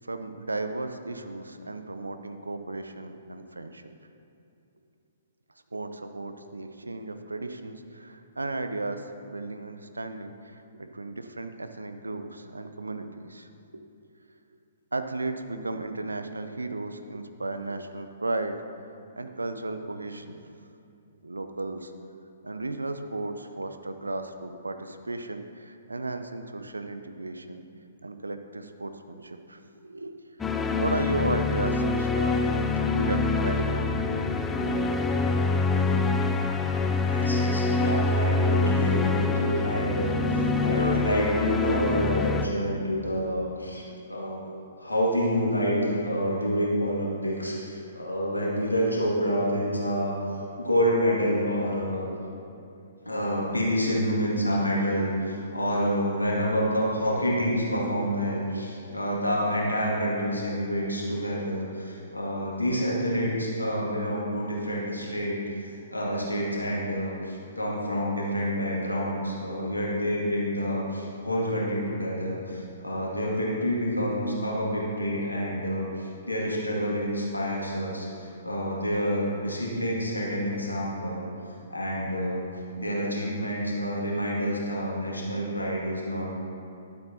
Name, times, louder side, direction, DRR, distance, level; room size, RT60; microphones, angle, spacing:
voice 1, 0.0-3.8 5.7-13.8 14.9-18.6 19.2-20.4 21.2-21.9 22.4-27.6 28.0-30.2 30.7-34.0, right 2 dB, 80° right, 8 dB, 0.6 m, -35 dB
sound 1, 30.4-42.5, left 3 dB, 10° left, 0.4 m, -25 dB
voice 2, 36.5-44.5 44.8-50.2 50.6-52.1 53.0-81.3 81.7-82.5 82.7-86.4, equal, 85° left, -4 dB, 2.2 m, -28 dB
12.0 x 8.0 x 2.8 m, 2.7 s
figure-of-eight pair, 120°, 0 cm